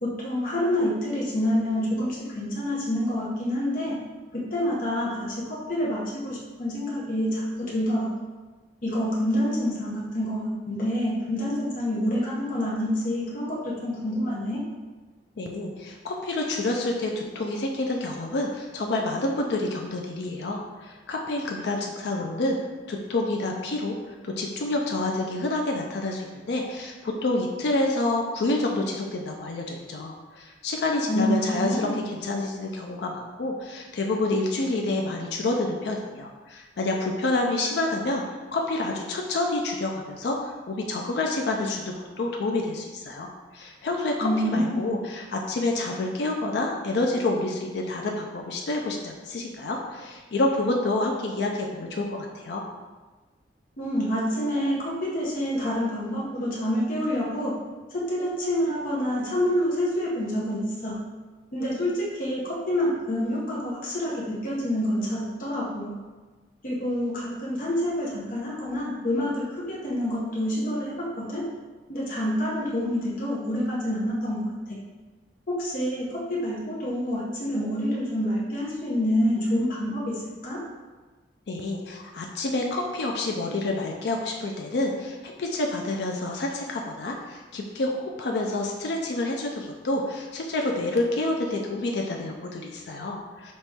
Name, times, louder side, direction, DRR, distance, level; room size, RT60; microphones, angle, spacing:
voice 1, 0.0-4.0 4.3-8.1 8.8-14.6 31.1-32.0 44.2-44.8 53.8-57.6 57.9-61.0 61.5-66.0 66.6-71.5 71.9-74.8 75.5-80.6, equal, 50° left, -5 dB, 0.9 m, -27 dB
voice 2, 15.4-22.6 22.9-38.2 38.5-52.6 81.5-93.5, left 2 dB, 65° left, 1 dB, 0.4 m, -28 dB
4.2 x 3.0 x 3.5 m, 1.3 s
head